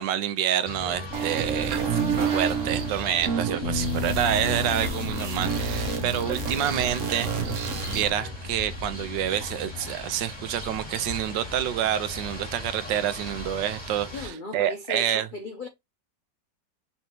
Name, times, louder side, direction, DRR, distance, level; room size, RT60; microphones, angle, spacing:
voice 1, 0.0-2.0 2.3-7.6 7.9-15.3, right 10 dB, 85° right, 1.3 m, -28 dB
sound 1, 0.7-14.3, left 1 dB, 5° left, 2.1 m, -38 dB
sound 2, 1.1-8.1, right 6 dB, 50° right, 1.1 m, -29 dB
sound 3, 3.6-9.9, left 7 dB, 60° left, 1.2 m, -35 dB
voice 2, 14.1-15.7, left 3 dB, 75° left, 0.4 m, -37 dB
5.7 x 3.2 x 2.9 m
omnidirectional pair, 1.9 m